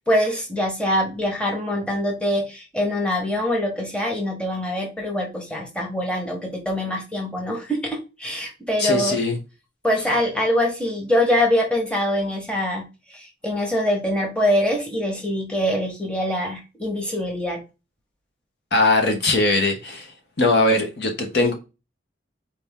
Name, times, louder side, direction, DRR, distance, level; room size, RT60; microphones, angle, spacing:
voice 1, 0.1-9.2 9.8-17.6 21.3-21.5, left 1 dB, 5° left, 1.1 m, -24 dB
voice 2, 8.8-9.4 18.7-20.1 20.4-21.5, left 2 dB, 60° left, 1.0 m, -20 dB
4.3 x 3.4 x 3.5 m
head